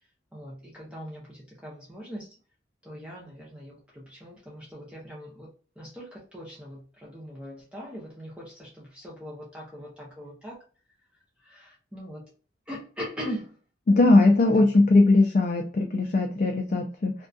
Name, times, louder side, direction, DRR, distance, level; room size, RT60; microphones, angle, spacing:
voice 1, 0.3-2.3 2.8-5.5 5.8-10.6 11.4-12.2 12.7-13.6 14.1-14.2 14.6-14.7, equal, 5° right, -5 dB, 0.6 m, -40 dB
voice 2, 13.9-17.1, left 2 dB, 45° left, 3 dB, 0.3 m, -20 dB
2.5 x 2.2 x 2.3 m, 0.38 s
head